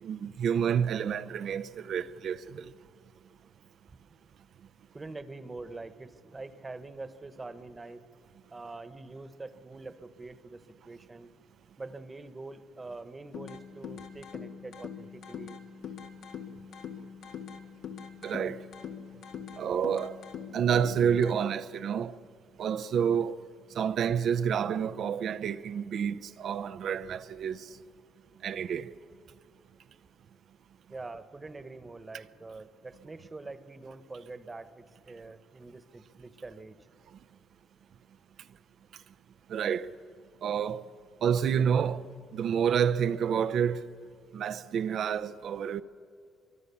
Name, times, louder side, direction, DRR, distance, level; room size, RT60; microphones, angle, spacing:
voice 1, 0.0-2.7 18.2-18.6 19.6-20.2 20.5-22.2 22.6-23.4 23.7-27.7 28.4-28.9 39.5-39.9 40.4-40.8 41.2-42.0 42.3-43.8 44.3-45.8, right 8 dB, 65° right, 0.7 m, -29 dB
voice 2, 4.9-8.1 8.5-11.3 11.8-15.6 30.9-36.8, right 3 dB, 25° right, 1.3 m, -44 dB
sound 1, 13.3-21.3, left 7 dB, 80° left, 1.9 m, -43 dB
24.0 x 23.0 x 7.1 m
cardioid pair, 90°, 0 cm